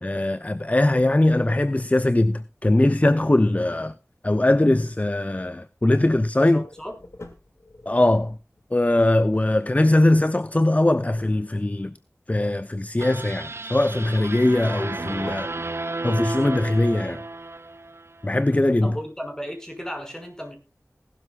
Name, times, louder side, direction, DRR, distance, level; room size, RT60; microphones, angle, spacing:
voice 1, 0.0-3.9 4.2-6.6 7.9-8.4 8.7-11.9 12.3-15.5 16.0-17.2 18.2-19.0, left 1 dB, 30° left, 0.7 m, -21 dB
sound 1, 0.8-1.9 6.4-10.0 14.5-15.7, left 2 dB, 65° left, 2.4 m, -47 dB
voice 2, 6.4-6.9 18.8-20.6, equal, 10° left, 5.9 m, -35 dB
sound 2, 13.0-18.3, right 2 dB, 60° right, 0.7 m, -33 dB
19.0 x 12.5 x 2.4 m
wide cardioid pair, 40°, 5 cm